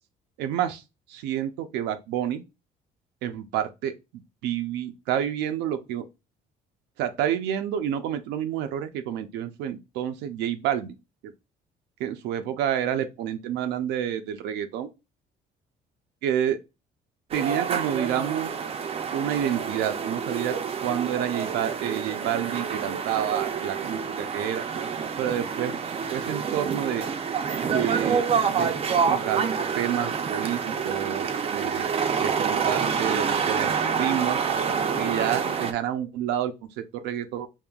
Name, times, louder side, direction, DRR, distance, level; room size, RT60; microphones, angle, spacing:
voice 1, 0.4-0.8 1.1-2.4 3.2-6.1 7.0-11.0 11.2-11.3 12.0-14.9 16.2-16.6 17.3-18.5 19.1-24.6 25.2-25.8 26.1-27.1 27.6-28.3 28.5-28.7 29.1-29.4 29.7-34.4 35.0-37.5, right 10 dB, 90° right, 0.5 m, -29 dB
sound 1, 17.3-35.7, right 6 dB, 35° right, 0.5 m, -27 dB
5.4 x 2.7 x 2.3 m
cardioid pair, 110°, 17 cm